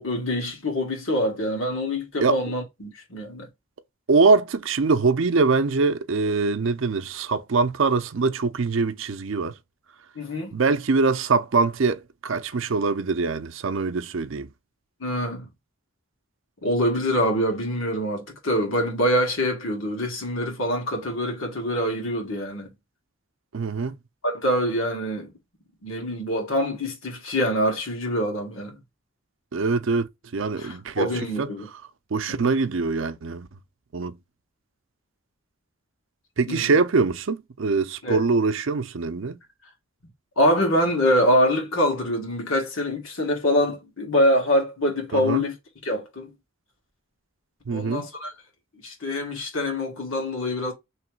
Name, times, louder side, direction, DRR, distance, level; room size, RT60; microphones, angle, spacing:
voice 1, 0.0-3.5 10.1-10.6 15.0-15.5 16.6-22.7 24.2-25.3 25.8-28.8 30.6-31.7 32.3-32.5 36.5-36.7 38.0-38.2 40.4-45.5 45.8-46.3 47.7-48.3 48.8-50.7, equal, 75° left, 1.7 m, -25 dB
voice 2, 4.1-9.6 10.5-14.5 23.5-24.0 29.5-31.1 31.4-31.5 32.1-33.5 33.9-34.2 36.4-39.4 45.1-45.4 47.7-48.1, right 4 dB, 65° right, 0.5 m, -23 dB
3.2 x 2.9 x 4.6 m
head